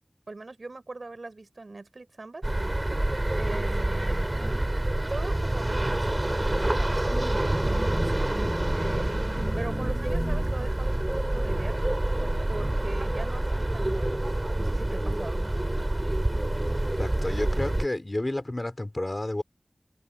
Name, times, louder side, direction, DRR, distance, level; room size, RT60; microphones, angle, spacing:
voice 1, 0.3-2.4 3.4-4.3 5.1-8.3 8.7-11.8 12.5-14.2 14.6-15.5, right 3 dB, 90° right, 4.9 m, -40 dB
sound 1, 2.4-17.9, right 1 dB, 35° right, 3.0 m, -27 dB
sound 2, 7.1-13.4, equal, ahead, 5.9 m, -39 dB
voice 2, 17.0-19.4, left 1 dB, 40° left, 4.1 m, -31 dB
wide cardioid pair, 50°, 0 cm